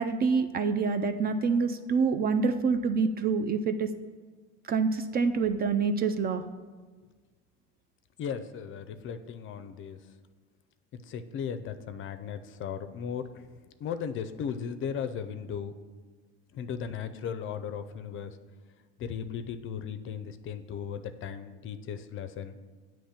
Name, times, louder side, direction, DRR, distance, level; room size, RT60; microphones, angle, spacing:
voice 1, 0.0-3.9 4.6-6.4, right 5 dB, 30° right, 9 dB, 0.4 m, -26 dB
voice 2, 8.2-10.0 11.0-13.5 13.8-15.7 16.5-18.4 19.0-22.6, left 7 dB, 40° left, 10 dB, 0.5 m, -36 dB
8.5 x 3.1 x 5.7 m, 1.4 s
supercardioid pair, 90°, 30 cm